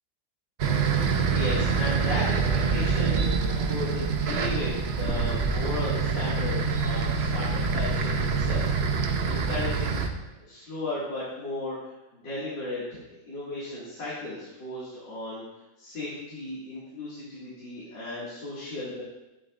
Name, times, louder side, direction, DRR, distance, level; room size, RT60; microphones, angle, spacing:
sound 1, 0.6-10.1, right 5 dB, 55° right, 0.7 m, -26 dB
voice 1, 0.9-8.7 8.9-10.0 10.4-15.4 15.8-19.0, left 2 dB, 75° left, -9 dB, 3.0 m, -35 dB
12.5 x 9.5 x 2.5 m, 0.99 s
omnidirectional pair, 1.9 m